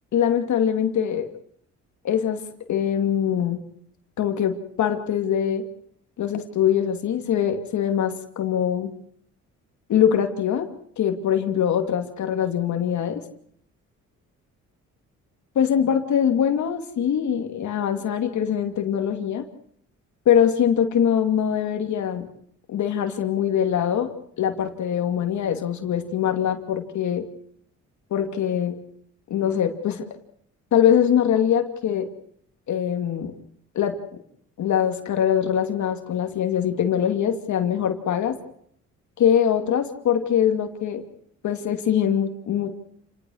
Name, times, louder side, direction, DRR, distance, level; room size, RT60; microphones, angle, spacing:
voice 1, 0.1-1.3 2.0-2.4 2.7-3.6 4.2-5.6 6.2-8.9 9.9-10.7 11.0-13.2 15.5-19.4 20.3-22.3 22.7-24.1 24.4-27.3 28.1-28.8 29.3-30.1 30.7-32.1 32.7-33.3 33.7-34.0 34.6-38.4 39.2-41.0 41.4-42.7, left 9 dB, 70° left, 6 dB, 2.5 m, -23 dB
29.0 x 19.0 x 6.4 m, 0.67 s
cardioid pair, 90°, 30 cm